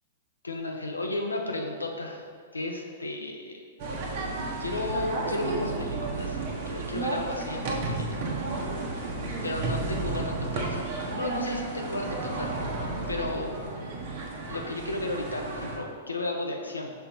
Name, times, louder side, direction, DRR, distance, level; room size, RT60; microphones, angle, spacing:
voice 1, 0.4-2.2 2.5-3.6 4.6-8.2 8.6-8.7 9.4-12.5 13.1-13.6 14.5-16.9, left 2 dB, 90° left, 2 dB, 0.7 m, -33 dB
sound 1, 3.8-15.8, right 2 dB, 50° right, 1.0 m, -32 dB
5.7 x 3.9 x 4.5 m, 2.1 s
figure-of-eight pair, 110°, 0 cm